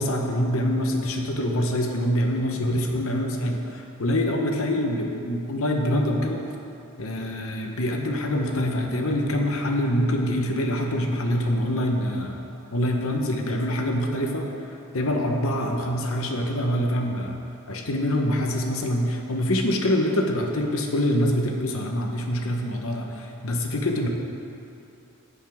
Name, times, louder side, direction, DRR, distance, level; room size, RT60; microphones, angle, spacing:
voice 1, 0.0-6.4 7.0-12.4 12.7-14.5 14.9-24.1, left 1 dB, 65° left, 2 dB, 0.9 m, -25 dB
16.0 x 5.5 x 3.6 m, 2.8 s
head